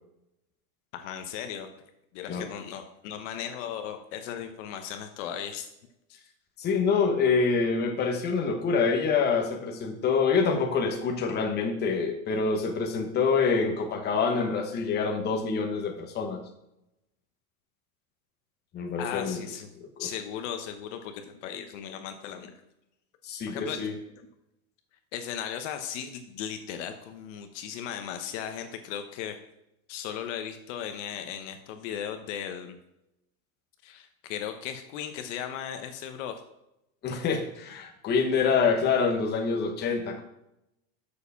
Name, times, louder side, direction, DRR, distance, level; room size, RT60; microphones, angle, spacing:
voice 1, 0.9-1.7 2.1-5.7 6.1-6.2 19.0-19.7 20.0-22.6 23.5-23.8 25.1-29.4 29.9-32.8 33.8-36.4, left 9 dB, 55° left, 7 dB, 1.0 m, -37 dB
voice 2, 6.6-16.4 18.7-19.4 20.0-20.1 23.2-23.9 37.0-40.2, left 5 dB, 25° left, 3 dB, 1.1 m, -26 dB
6.6 x 4.9 x 6.8 m, 0.86 s
supercardioid pair, 145°, 43 cm